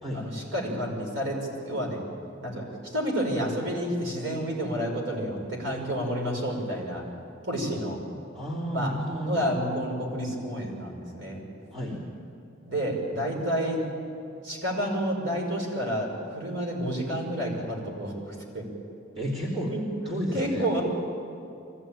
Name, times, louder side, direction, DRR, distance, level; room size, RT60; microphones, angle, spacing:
voice 1, 0.1-2.0 2.4-7.0 7.5-8.0 8.7-8.9 9.2-11.4 12.7-13.8 14.4-18.6 19.7-20.8, equal, 70° right, 0 dB, 5.6 m, -30 dB
voice 2, 8.3-9.5 11.7-12.0 19.2-19.7 20.1-20.7, equal, 25° right, -7 dB, 3.3 m, -31 dB
23.5 x 15.5 x 9.0 m, 2.6 s
head